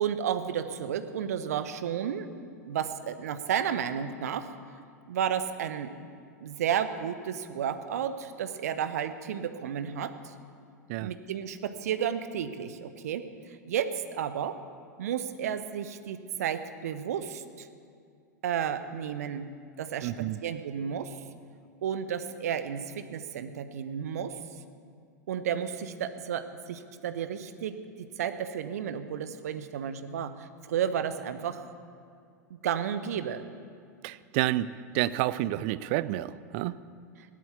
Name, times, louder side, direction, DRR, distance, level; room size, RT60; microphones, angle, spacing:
voice 1, 0.0-2.3 2.7-4.5 5.1-5.9 6.4-10.3 11.0-13.2 13.7-14.6 15.0-17.7 18.4-19.5 19.8-21.2 21.8-24.4 25.3-31.7 32.6-33.4, right 8 dB, 60° right, 11 dB, 1.0 m, -32 dB
voice 2, 20.0-20.4 34.0-36.7, right 15 dB, 45° right, 18 dB, 0.5 m, -29 dB
16.5 x 12.0 x 7.1 m, 2.3 s
figure-of-eight pair, 90°, 9 cm